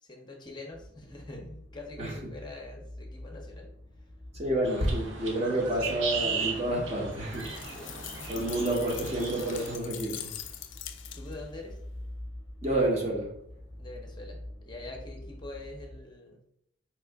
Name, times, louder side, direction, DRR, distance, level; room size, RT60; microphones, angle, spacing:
voice 1, 0.0-3.7 7.8-7.9 11.1-11.8 13.8-14.4 14.7-16.4, left 2 dB, 25° left, 0.6 m, -44 dB
sound 1, 0.7-16.0, left 1 dB, 55° right, 1.3 m, -46 dB
voice 2, 4.3-7.5 8.3-10.3 12.6-13.3, right 1 dB, 35° right, 0.9 m, -29 dB
sound 2, 4.6-9.8, right 5 dB, 70° right, 0.8 m, -36 dB
sound 3, 7.3-11.5, left 11 dB, 65° left, 0.4 m, -43 dB
4.5 x 2.4 x 3.4 m
head